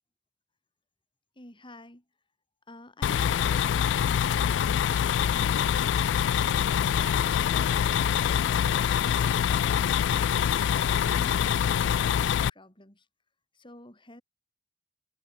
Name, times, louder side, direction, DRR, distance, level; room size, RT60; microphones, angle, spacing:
voice 1, 1.4-2.0 2.7-5.9 6.7-9.4 11.0-13.1 13.5-14.2, left 1 dB, 30° left, 4.7 m, -49 dB
sound 1, 3.0-12.5, left 9 dB, 80° left, 0.3 m, -25 dB
head